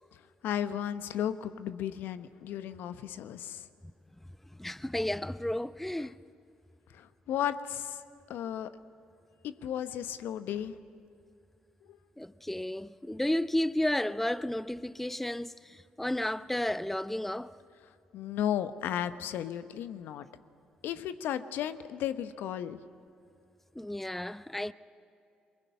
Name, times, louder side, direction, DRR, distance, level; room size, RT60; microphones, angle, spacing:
voice 1, 0.4-3.7 6.9-8.0 8.3-8.7 9.4-10.7 11.9-12.0 18.1-20.3 20.8-22.8, left 10 dB, 70° left, 0.9 m, -34 dB
voice 2, 4.6-6.2 12.2-17.5 23.8-24.7, left 1 dB, 5° left, 0.6 m, -32 dB
23.0 x 21.0 x 9.5 m
hypercardioid pair, 50°, 4 cm